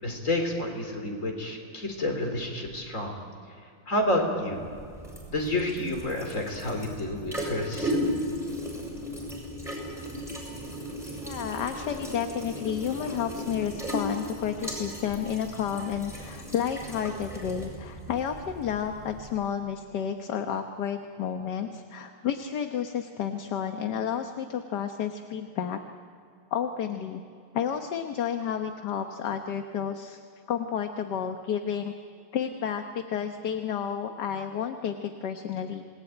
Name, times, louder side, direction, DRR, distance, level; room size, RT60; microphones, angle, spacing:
voice 1, 0.0-3.1 3.9-4.6 5.3-8.1, left 1 dB, 35° left, 3 dB, 3.9 m, -29 dB
sound 1, 4.4-19.5, equal, ahead, 6.7 m, -36 dB
voice 2, 11.2-25.8 26.5-27.2 27.5-30.2 30.5-31.9 32.3-35.8, left 8 dB, 55° left, 6 dB, 1.5 m, -31 dB
27.5 x 19.5 x 9.1 m, 2.4 s
omnidirectional pair, 2.4 m